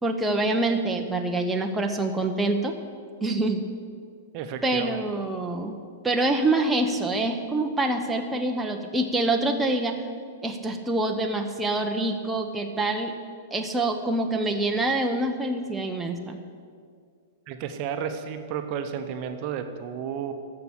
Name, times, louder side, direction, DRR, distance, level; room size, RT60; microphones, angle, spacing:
voice 1, 0.0-2.7 3.2-3.6 4.6-5.8 6.0-10.0 10.4-13.1 13.5-16.4, right 2 dB, 10° right, 3 dB, 0.9 m, -26 dB
voice 2, 4.3-5.0 17.5-20.3, right 8 dB, 40° right, 7 dB, 0.9 m, -32 dB
14.0 x 5.8 x 8.1 m, 2.2 s
figure-of-eight pair, 105°, 0 cm